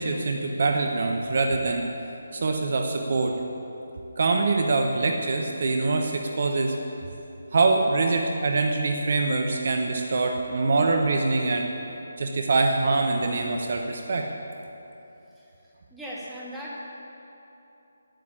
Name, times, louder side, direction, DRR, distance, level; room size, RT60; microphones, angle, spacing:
voice 1, 0.0-1.9 2.3-3.4 4.2-6.8 7.5-11.7 12.2-14.3, right 3 dB, 50° right, 3 dB, 1.1 m, -24 dB
voice 2, 15.9-16.8, equal, ahead, -10 dB, 2.5 m, -38 dB
11.5 x 9.7 x 8.6 m, 3.0 s
figure-of-eight pair, 150°, 0 cm